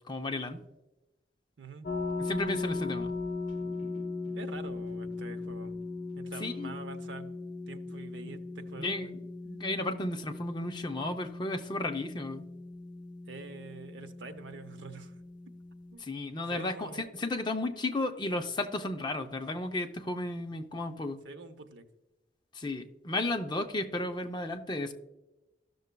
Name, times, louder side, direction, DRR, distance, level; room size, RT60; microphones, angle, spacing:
voice 1, 0.1-0.7 2.2-3.1 6.4-6.7 7.9-8.0 8.2-8.3 8.8-9.2 9.5-12.4 16.0-21.2 22.5-24.9, left 2 dB, 25° left, 6 dB, 0.5 m, -34 dB
voice 2, 1.6-1.9 4.3-5.7 6.2-7.3 7.7-9.1 13.3-15.1 15.9-16.1 16.5-17.2 21.2-21.8, right 3 dB, 80° right, 8 dB, 0.7 m, -46 dB
sound 1, 1.8-15.9, left 3 dB, 45° left, 1.0 m, -38 dB
14.0 x 6.6 x 2.2 m, 1.0 s
head